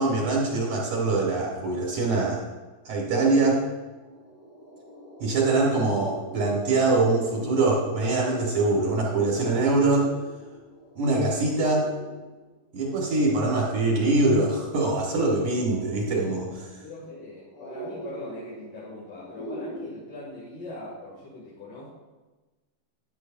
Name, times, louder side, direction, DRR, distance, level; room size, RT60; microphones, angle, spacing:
voice 1, 0.0-2.4 2.9-3.6 5.2-10.1 11.0-11.9 12.7-16.8, right 2 dB, 60° right, -3 dB, 2.5 m, -23 dB
sound 1, 3.7-19.8, right 1 dB, 40° left, 4.4 m, -43 dB
voice 2, 16.8-21.9, left 2 dB, 60° left, -7 dB, 3.8 m, -41 dB
12.0 x 10.5 x 2.6 m, 1.2 s
omnidirectional pair, 4.3 m